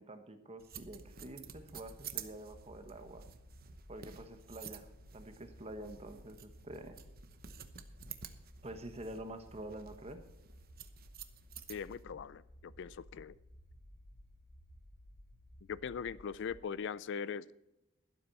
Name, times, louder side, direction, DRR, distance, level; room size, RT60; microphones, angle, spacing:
voice 1, 0.0-3.2 3.9-7.0 8.6-10.2, right 1 dB, 30° right, 1.2 m, -47 dB
sound 1, 0.6-12.0, right 9 dB, 50° right, 1.0 m, -51 dB
sound 2, 0.7-16.6, equal, 80° left, 2.6 m, -57 dB
voice 2, 11.7-13.4 15.7-17.5, left 6 dB, 60° left, 0.4 m, -41 dB
12.5 x 12.0 x 4.1 m
head